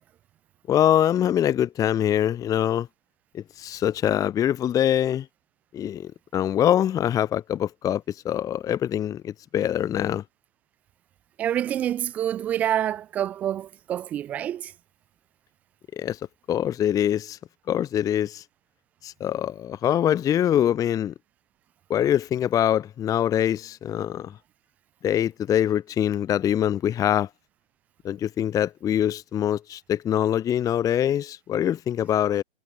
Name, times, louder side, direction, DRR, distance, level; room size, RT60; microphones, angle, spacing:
voice 1, 0.7-2.9 3.3-5.3 5.7-10.2 15.9-16.2 16.5-17.4 17.7-18.4 19.0-21.1 21.9-24.3 25.0-27.3 28.0-32.4, left 10 dB, 10° left, 1.1 m, -24 dB
voice 2, 11.4-14.7, right 11 dB, 5° right, 0.4 m, -27 dB
figure-of-eight pair, 125°, 29 cm